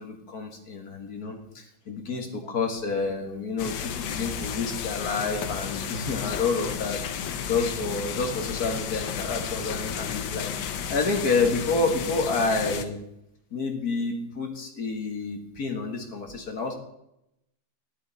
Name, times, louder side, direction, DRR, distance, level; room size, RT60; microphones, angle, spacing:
voice 1, 0.0-13.0 13.5-16.7, left 4 dB, 55° left, 4 dB, 2.1 m, -29 dB
sound 1, 3.6-12.9, left 8 dB, 85° left, 1.7 m, -33 dB
13.5 x 11.0 x 4.1 m, 0.83 s
omnidirectional pair, 2.0 m